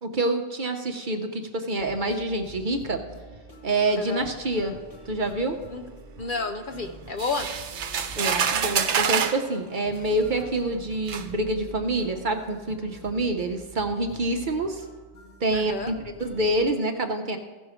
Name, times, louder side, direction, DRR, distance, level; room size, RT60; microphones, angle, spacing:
voice 1, 0.0-3.0 3.6-4.8 5.1-5.6 8.2-14.8 15.4-17.4, right 2 dB, 50° right, 5 dB, 0.9 m, -27 dB
sound 1, 1.8-16.7, right 2 dB, 30° left, 1.4 m, -46 dB
voice 2, 6.2-7.5 15.5-15.9, left 4 dB, 50° left, 6 dB, 0.7 m, -30 dB
sound 2, 7.2-9.4 10.4-10.5 11.1-11.3, right 7 dB, 75° right, 1.0 m, -26 dB
15.5 x 6.2 x 4.9 m, 1.4 s
omnidirectional pair, 1.2 m